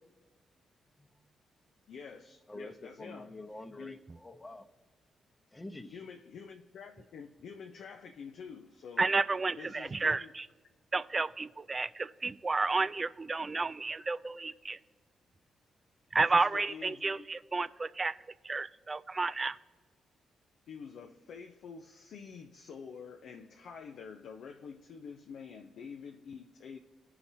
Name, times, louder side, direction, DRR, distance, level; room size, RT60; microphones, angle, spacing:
voice 1, 1.9-3.3 3.8-4.0 5.9-9.1 9.6-10.3 16.3-17.3 20.7-26.8, left 6 dB, 70° left, 0.5 m, -47 dB
voice 2, 2.5-4.7 5.5-6.0, left 2 dB, 25° left, 0.8 m, -47 dB
voice 3, 9.0-10.5 10.9-14.8 16.1-18.2 18.4-19.6, right 3 dB, 35° right, 0.3 m, -31 dB
16.0 x 5.6 x 2.7 m
supercardioid pair, 50°, 0 cm